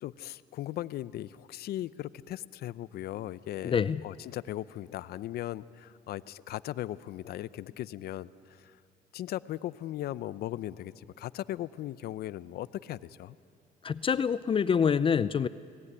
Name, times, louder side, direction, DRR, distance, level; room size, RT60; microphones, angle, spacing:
voice 1, 0.0-8.8 9.1-13.4, left 13 dB, 65° left, 17 dB, 0.7 m, -38 dB
voice 2, 3.6-4.0 13.8-15.5, left 7 dB, 30° left, 15 dB, 0.5 m, -26 dB
29.5 x 19.5 x 9.9 m, 2.6 s
cardioid pair, 110°, 17 cm